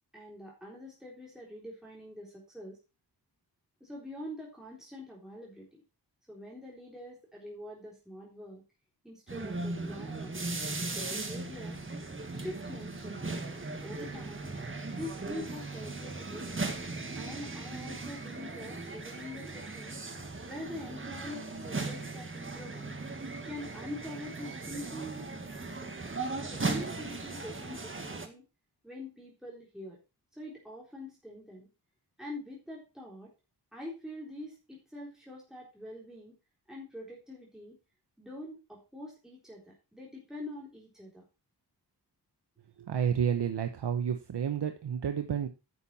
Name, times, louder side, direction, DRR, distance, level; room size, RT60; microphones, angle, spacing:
voice 1, 0.1-2.8 3.8-5.8 6.3-8.6 9.0-10.4 10.9-11.8 12.3-13.4 13.7-14.6 14.9-16.6 17.2-20.0 20.4-23.0 23.4-25.3 25.6-25.9 26.5-28.5 28.8-30.0 30.3-31.7 32.2-33.3 33.7-36.3 36.7-37.8 38.2-41.2, left 1 dB, ahead, -4 dB, 3.8 m, -45 dB
sound 1, 9.3-28.3, right 3 dB, 30° right, 1.8 m, -38 dB
voice 2, 42.8-45.5, right 8 dB, 75° right, 7 dB, 1.1 m, -30 dB
11.0 x 7.2 x 4.2 m, 0.29 s
wide cardioid pair, 90°, 40 cm